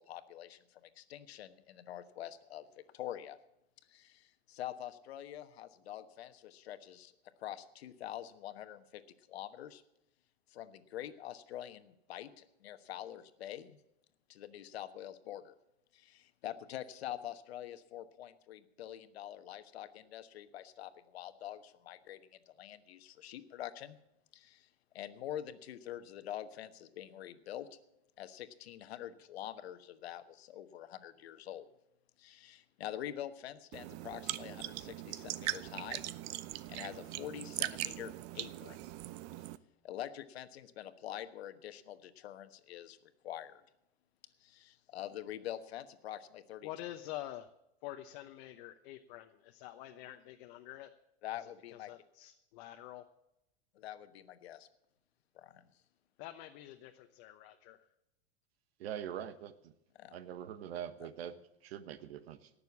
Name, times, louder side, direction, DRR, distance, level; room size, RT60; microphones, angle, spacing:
voice 1, 0.0-2.7 2.9-3.4 3.9-7.1 7.4-9.0 9.3-9.8 10.5-13.8 14.3-15.5 15.9-22.2 22.5-24.0 24.3-24.7 24.9-27.7 28.2-31.7 32.2-36.0 36.7-38.8 39.8-43.6 44.4-46.7 51.2-51.9 53.7-54.7 55.3-55.7 59.9-60.2, left 12 dB, 75° left, 11 dB, 1.3 m, -45 dB
sound 1, 33.7-39.6, right 16 dB, 50° right, 0.7 m, -40 dB
voice 2, 46.6-47.5 47.8-50.9 51.4-53.0 56.2-57.8, left 14 dB, 55° left, 6 dB, 1.0 m, -47 dB
voice 3, 58.8-59.7 60.1-62.5, right 9 dB, 75° right, 13 dB, 1.3 m, -43 dB
18.5 x 6.8 x 8.5 m, 0.85 s
hypercardioid pair, 110°, 32 cm